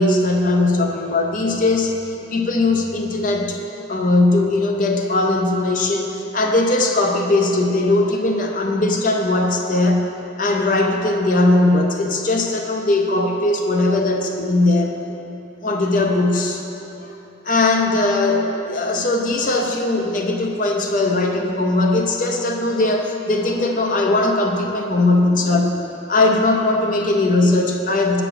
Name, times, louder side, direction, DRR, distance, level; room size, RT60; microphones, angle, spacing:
voice 1, 0.0-2.0 2.3-3.6 3.9-10.1 10.4-14.9 15.6-16.6 17.4-25.8 26.1-28.2, left 2 dB, 45° left, 2 dB, 0.5 m, -19 dB
6.9 x 4.1 x 5.9 m, 2.9 s
head